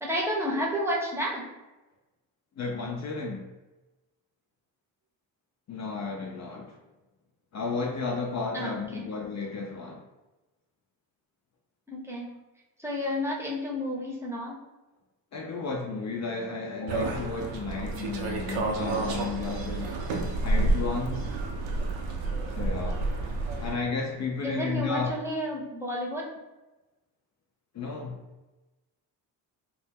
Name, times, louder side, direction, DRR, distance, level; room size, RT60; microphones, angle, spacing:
voice 1, 0.0-1.4 8.5-9.0 11.9-12.3 12.8-14.6 24.4-26.3, equal, 5° right, -4 dB, 0.7 m, -31 dB
voice 2, 2.6-3.5 5.7-6.8 7.5-10.0 15.3-19.9 20.4-21.3 22.5-23.0 23.6-25.1 27.7-28.2, left 4 dB, 35° left, 0 dB, 0.4 m, -33 dB
sound 1, 16.9-23.7, right 2 dB, 65° right, 0.6 m, -29 dB
2.2 x 2.0 x 3.3 m, 1.1 s
hypercardioid pair, 55°, 50 cm